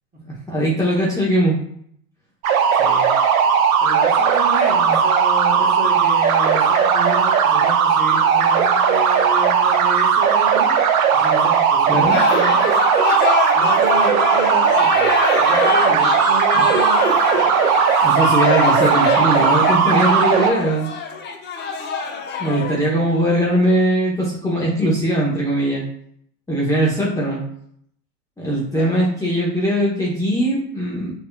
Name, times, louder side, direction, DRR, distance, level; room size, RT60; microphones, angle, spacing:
voice 1, 0.5-1.6 11.9-12.2 16.5-16.6 18.0-20.9 22.4-25.8 26.5-27.4 28.4-31.1, right 1 dB, 5° left, -7 dB, 1.1 m, -20 dB
sound 1, 2.4-20.5, right 7 dB, 60° right, 0.7 m, -17 dB
voice 2, 2.7-3.1 3.8-10.7 11.1-12.7 13.5-15.1 15.4-17.1 28.7-29.0, right 1 dB, 20° right, -3 dB, 1.4 m, -30 dB
sound 2, 12.1-22.7, left 5 dB, 20° left, 0.7 m, -24 dB
6.4 x 2.9 x 2.3 m, 0.68 s
figure-of-eight pair, 85°, 47 cm